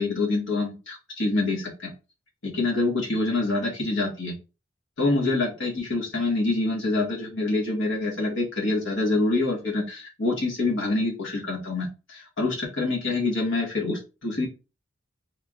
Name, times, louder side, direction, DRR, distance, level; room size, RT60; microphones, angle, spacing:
voice 1, 0.0-1.9 2.4-4.3 5.0-14.5, left 2 dB, 85° left, -2 dB, 1.5 m, -26 dB
3.5 x 3.3 x 2.4 m, 0.30 s
head